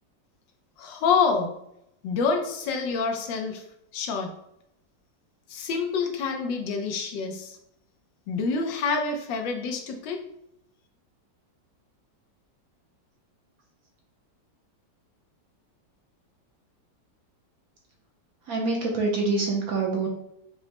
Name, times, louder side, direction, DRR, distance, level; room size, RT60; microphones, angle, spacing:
voice 1, 0.8-1.5 2.0-3.6 3.9-4.3 5.5-7.6 8.3-10.2, left 5 dB, 90° left, 4 dB, 1.4 m, -27 dB
voice 2, 18.5-20.1, right 3 dB, 65° right, -1 dB, 1.0 m, -25 dB
5.3 x 2.1 x 2.8 m, 0.78 s
omnidirectional pair, 1.9 m